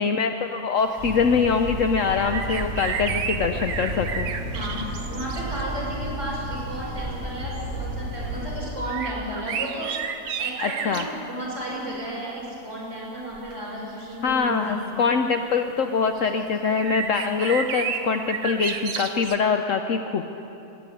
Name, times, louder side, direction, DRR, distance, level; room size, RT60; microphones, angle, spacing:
voice 1, 0.0-4.3 10.6-11.1 14.2-20.2, left 5 dB, 65° left, 6 dB, 0.9 m, -23 dB
sound 1, 1.0-8.6, right 1 dB, 20° left, 3.9 m, -32 dB
sound 2, 2.1-5.6 6.3-6.5 8.9-11.1 13.2-13.5 14.3-14.4 16.2-16.3 16.8-19.4, right 7 dB, 70° right, 1.3 m, -31 dB
voice 2, 4.5-9.9 10.4-14.9 15.2-15.3, right 1 dB, 50° right, -5 dB, 5.4 m, -33 dB
18.0 x 8.4 x 9.3 m, 2.9 s
omnidirectional pair, 1.7 m